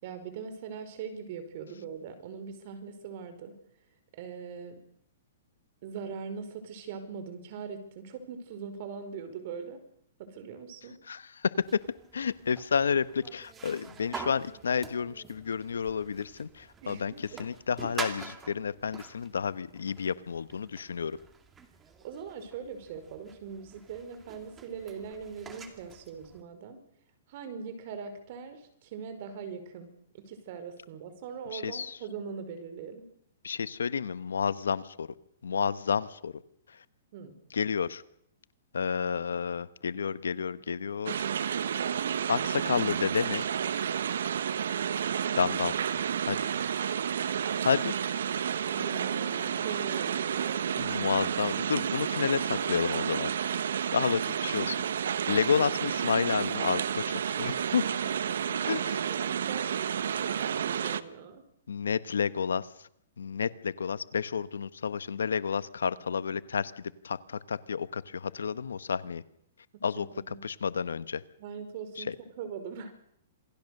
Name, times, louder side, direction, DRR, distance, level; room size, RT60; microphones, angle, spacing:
voice 1, 0.0-3.5 4.2-4.8 5.8-9.8 10.2-11.0 16.8-17.4 22.0-26.8 27.3-33.1 37.1-37.4 48.7-50.6 58.4-61.4 70.0-70.4 71.4-72.9, right 6 dB, 50° right, 10 dB, 5.1 m, -41 dB
voice 2, 11.1-11.8 12.1-21.2 31.5-32.0 33.4-35.1 35.4-36.3 36.7-36.8 37.5-38.0 38.7-41.3 42.3-43.5 45.3-45.7 46.2-46.4 47.6-47.9 50.8-53.6 53.9-54.8 55.3-57.8 58.6-59.1 61.7-62.7 63.2-69.2 69.8-71.2 72.0-72.1, left 6 dB, 90° left, 15 dB, 1.1 m, -30 dB
sound 1, 11.6-26.4, right 5 dB, 15° right, 2.4 m, -46 dB
sound 2, 41.1-61.0, right 8 dB, 75° right, 1.1 m, -31 dB
27.5 x 18.5 x 6.7 m, 0.72 s
hypercardioid pair, 140°, 0 cm